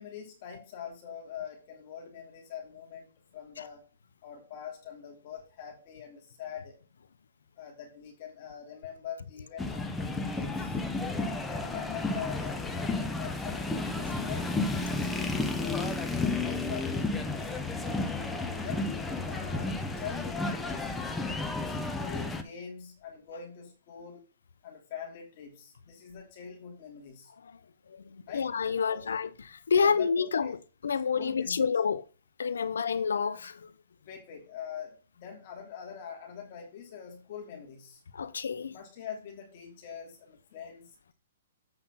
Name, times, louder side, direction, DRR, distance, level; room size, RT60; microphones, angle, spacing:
voice 1, 0.0-3.1 3.3-3.8 4.2-6.7 7.5-10.8 11.5-14.5 14.9-17.6 18.6-18.9 19.3-21.0 21.6-24.2 24.6-27.3 28.3-28.5 28.9-29.0 29.8-30.5 31.1-31.7 34.1-38.0 38.7-41.1, left 8 dB, 45° left, 3.1 m, -44 dB
sound 1, 9.6-22.4, left 3 dB, 10° left, 1.0 m, -32 dB
voice 2, 27.9-30.6 30.8-32.0 32.4-33.7 38.1-38.7, left 6 dB, 85° left, 0.8 m, -29 dB
8.1 x 5.6 x 5.6 m
hypercardioid pair, 135°, 0 cm